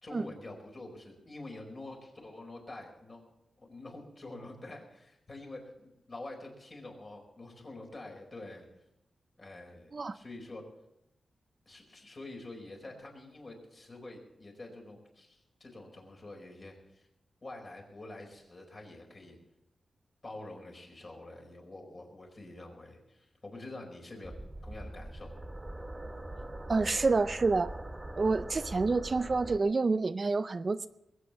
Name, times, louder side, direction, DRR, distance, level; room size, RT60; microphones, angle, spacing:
voice 1, 0.0-3.2 3.6-8.7 9.4-10.6 11.6-17.1 17.4-19.4 20.2-24.3 24.6-25.4, left 2 dB, 35° left, 1 dB, 4.8 m, -47 dB
sound 1, 24.2-29.6, right 1 dB, 15° right, 2.2 m, -42 dB
voice 2, 26.7-27.7 28.2-30.9, right 3 dB, 40° right, 12 dB, 0.5 m, -28 dB
21.0 x 8.4 x 7.0 m, 0.87 s
wide cardioid pair, 115°, 0 cm